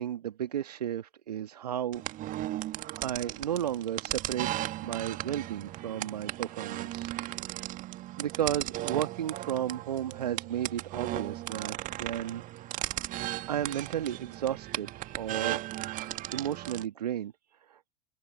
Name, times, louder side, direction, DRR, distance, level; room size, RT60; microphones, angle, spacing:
voice 1, 0.0-2.4 3.0-4.5 4.8-7.1 8.2-13.0 13.5-15.7 16.3-17.3 17.7-17.8, right 10 dB, 70° right, 1.6 m, -33 dB
sound 1, 1.9-16.8, right 15 dB, 40° right, 1.9 m, -36 dB
figure-of-eight pair, 80°, 21 cm